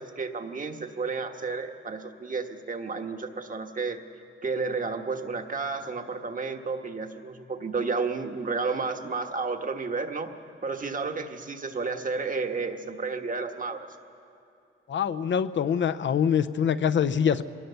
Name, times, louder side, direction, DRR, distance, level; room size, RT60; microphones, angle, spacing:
voice 1, 0.0-4.0 4.4-10.3 10.6-13.9, right 4 dB, 40° right, 5 dB, 1.4 m, -31 dB
voice 2, 14.9-17.4, left 8 dB, 60° left, 14 dB, 0.7 m, -24 dB
23.0 x 18.5 x 6.9 m, 2.5 s
cardioid pair, 90°, 21 cm